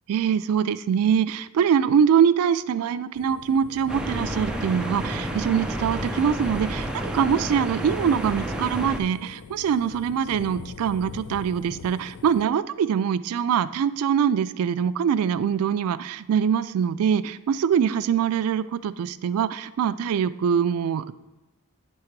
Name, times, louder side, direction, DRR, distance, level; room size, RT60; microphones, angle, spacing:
voice 1, 0.1-21.1, right 8 dB, 75° right, 15 dB, 0.3 m, -23 dB
sound 1, 3.1-12.5, left 6 dB, 70° left, 0.3 m, -43 dB
sound 2, 3.9-9.0, right 1 dB, 5° right, 0.5 m, -30 dB
9.5 x 3.8 x 4.5 m, 1.1 s
head